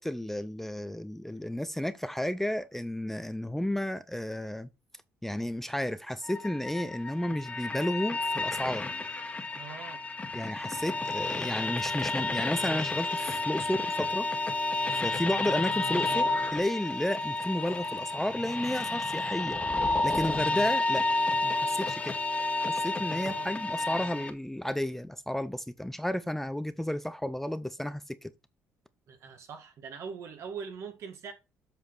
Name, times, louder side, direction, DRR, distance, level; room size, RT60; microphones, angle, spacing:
voice 1, 0.0-4.7 5.2-8.9 10.3-14.3 15.0-19.6 20.0-21.0 21.4-22.1 22.7-28.3, left 1 dB, 5° left, 0.5 m, -32 dB
sound 1, 6.2-24.3, left 2 dB, 25° left, 1.4 m, -31 dB
voice 2, 9.5-10.1 23.1-23.5 29.1-31.3, right 6 dB, 60° right, 2.1 m, -42 dB
7.9 x 5.0 x 4.2 m
supercardioid pair, 85°, 6 cm